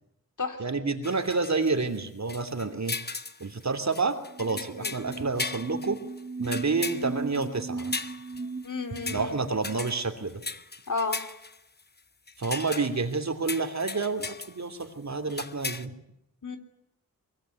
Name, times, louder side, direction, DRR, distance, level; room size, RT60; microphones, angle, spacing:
voice 1, 0.6-3.0 3.4-6.0 6.4-8.0 9.1-10.4 12.4-15.9, right 4 dB, 50° right, 8 dB, 2.9 m, -29 dB
sound 1, 1.0-2.0 2.3-3.5 3.9-8.7 8.9-9.3 9.6-11.8 12.3-13.1 13.5-14.5 14.8-14.9 15.3-15.8, left 3 dB, 30° left, 1.1 m, -37 dB
sound 2, 4.2-10.0, right 4 dB, 25° right, 2.0 m, -38 dB
voice 2, 8.6-9.4 10.9-11.2 16.4-16.6, left 3 dB, 60° left, 6 dB, 3.3 m, -32 dB
23.5 x 23.0 x 9.5 m, 0.80 s
wide cardioid pair, 85°, 35 cm